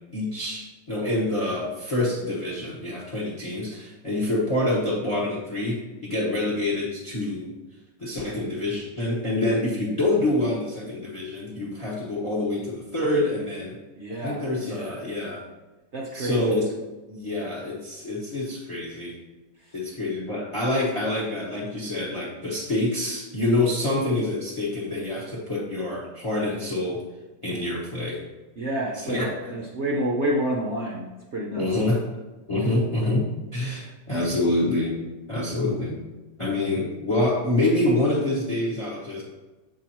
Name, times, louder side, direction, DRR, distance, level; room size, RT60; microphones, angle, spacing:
voice 1, 0.0-7.5 8.0-13.7 14.2-15.4 16.1-16.7 17.1-19.1 19.7-27.0 27.4-28.2 28.9-29.6 31.5-32.0 32.5-34.9 35.3-36.0 36.4-39.2, left 1 dB, 20° left, -5 dB, 0.9 m, -26 dB
voice 2, 14.0-14.5 15.9-16.4 28.6-31.1 31.3-31.7, right 1 dB, 65° right, -2 dB, 0.7 m, -28 dB
7.0 x 4.9 x 3.0 m, 1.2 s
omnidirectional pair, 2.0 m